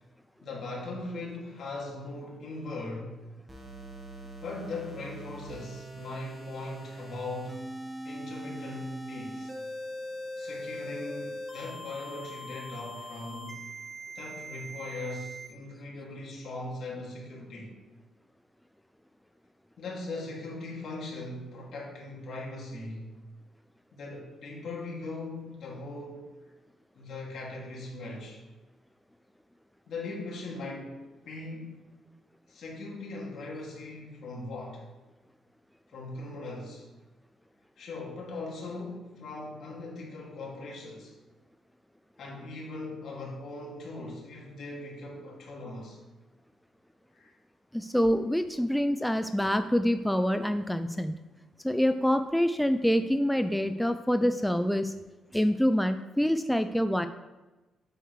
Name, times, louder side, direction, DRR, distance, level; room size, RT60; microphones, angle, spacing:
voice 1, 0.4-3.2 4.4-7.6 8.0-9.5 10.3-13.6 14.1-17.7 19.8-23.2 23.9-26.3 26.9-28.4 29.9-31.9 32.5-34.8 35.9-36.9 37.8-41.1 42.2-46.0 47.1-47.3, left 2 dB, 65° left, -2 dB, 2.3 m, -39 dB
sound 1, 3.5-15.5, equal, 15° right, 1.4 m, -41 dB
voice 2, 47.7-51.2 51.6-54.9 55.3-57.1, equal, 5° left, 9 dB, 0.3 m, -26 dB
7.8 x 6.5 x 3.2 m, 1.1 s
cardioid pair, 90°, 0 cm